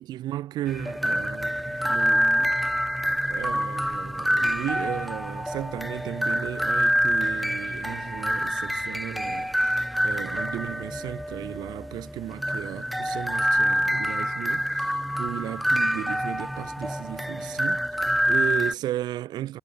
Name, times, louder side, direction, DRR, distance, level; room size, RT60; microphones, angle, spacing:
voice 1, 0.0-2.6 3.3-19.6, right 13 dB, 85° right, 1.1 m, -35 dB
sound 1, 0.7-18.7, equal, ahead, 0.4 m, -26 dB
sound 2, 1.5-11.7, left 5 dB, 30° left, 5.0 m, -54 dB
cardioid pair, 145°, 7 cm